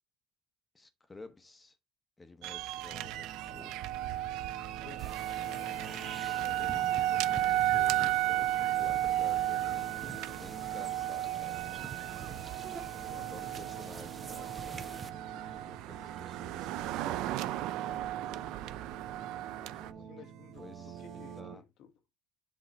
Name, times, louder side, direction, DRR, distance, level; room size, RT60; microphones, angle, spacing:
voice 1, 0.7-1.8 2.2-3.7 7.1-11.6 13.0-17.5 19.6-20.1 20.6-21.0 21.4-21.6, left 3 dB, 20° left, 0.9 m, -52 dB
sound 1, 2.4-19.9, right 13 dB, 70° right, 0.4 m, -34 dB
sound 2, 2.9-21.5, right 9 dB, 55° right, 0.9 m, -47 dB
voice 2, 4.5-6.9 20.0-21.9, left 7 dB, 65° left, 1.1 m, -54 dB
sound 3, 5.0-15.1, right 5 dB, 30° right, 0.7 m, -46 dB
7.9 x 3.1 x 4.1 m
supercardioid pair, 95°, 0 cm